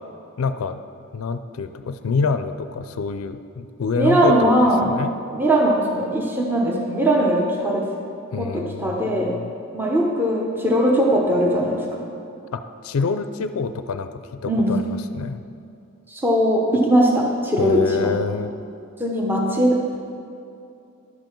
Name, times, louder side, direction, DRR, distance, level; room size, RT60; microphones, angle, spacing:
voice 1, 0.4-0.8 1.1-4.5 4.8-5.1 8.3-9.5 12.5-15.4 17.6-18.5, left 4 dB, 75° left, 10 dB, 0.4 m, -26 dB
voice 2, 3.9-5.0 5.3-7.9 8.4-9.4 9.7-12.1 14.5-14.8 16.1-18.2 19.0-19.8, right 1 dB, 10° right, -1 dB, 0.8 m, -20 dB
11.0 x 7.6 x 4.5 m, 2.6 s
head